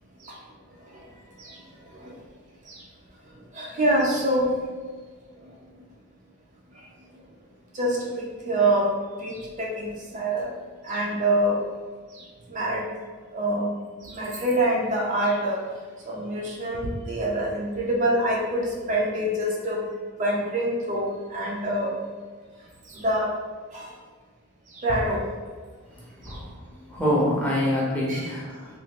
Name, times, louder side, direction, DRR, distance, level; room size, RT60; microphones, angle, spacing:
voice 1, 1.4-2.1 2.6-2.8 3.3-4.5 5.4-5.5 6.7-6.8 7.7-8.9 9.2-10.5 10.8-11.6 12.1-12.9 13.3-13.7 14.0-15.6 16.0-19.9 20.2-21.9 22.8-23.3 23.7-23.9 24.7-25.3 26.2-26.4 28.1-28.3, right 1 dB, 35° right, -3 dB, 0.4 m, -26 dB
voice 2, 26.9-28.8, equal, 5° left, -6 dB, 0.7 m, -25 dB
3.2 x 2.4 x 2.8 m, 1.5 s
head